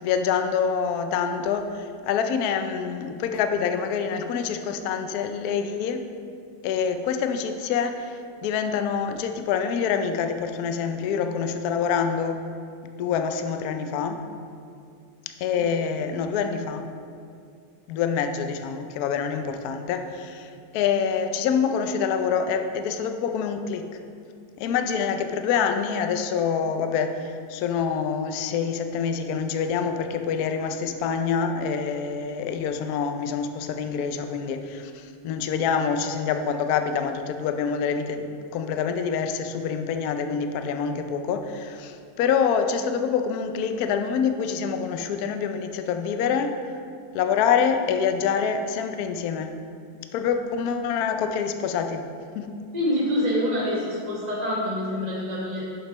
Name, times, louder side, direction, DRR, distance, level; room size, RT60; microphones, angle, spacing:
voice 1, 0.0-6.0 6.6-12.4 13.0-14.2 15.4-16.9 17.9-23.8 24.6-46.6 47.1-49.5 50.1-52.0 52.3-52.5, left 6 dB, 85° left, 7 dB, 0.8 m, -26 dB
voice 2, 52.7-55.6, left 1 dB, 25° right, -7 dB, 1.1 m, -26 dB
7.2 x 5.4 x 5.0 m, 2.4 s
omnidirectional pair, 2.3 m